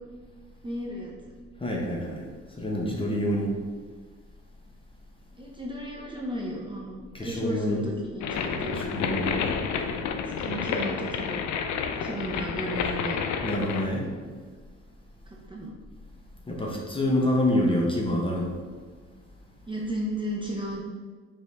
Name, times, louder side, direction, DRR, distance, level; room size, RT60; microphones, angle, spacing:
voice 1, 0.6-1.1 5.3-8.8 9.2-9.5 10.2-11.5 12.0-13.2 15.3-15.7 19.7-20.8, equal, 15° right, -3 dB, 0.6 m, -34 dB
voice 2, 1.6-2.3 2.6-3.5 7.1-7.8 8.4-9.3 13.4-14.3 16.5-18.5, left 1 dB, 20° left, -1 dB, 0.8 m, -27 dB
sound 1, 8.2-13.9, left 6 dB, 70° left, 0.5 m, -30 dB
5.1 x 2.6 x 3.3 m, 1.5 s
cardioid pair, 90°, 30 cm